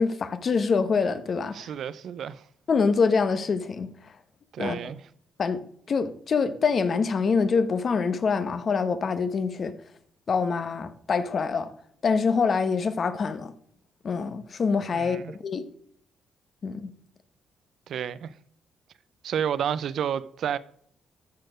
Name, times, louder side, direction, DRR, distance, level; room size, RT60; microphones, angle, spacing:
voice 1, 0.0-1.7 2.7-3.9 4.6-4.8 5.4-5.6 5.9-9.7 10.3-11.7 12.0-13.5 14.0-15.6 16.6-16.9, left 5 dB, 45° left, 1.0 m, -25 dB
voice 2, 1.5-2.4 4.5-5.1 14.9-15.3 17.9-18.3 19.2-20.6, right 8 dB, 65° right, 0.5 m, -30 dB
12.5 x 4.5 x 5.0 m
cardioid pair, 90°, 0 cm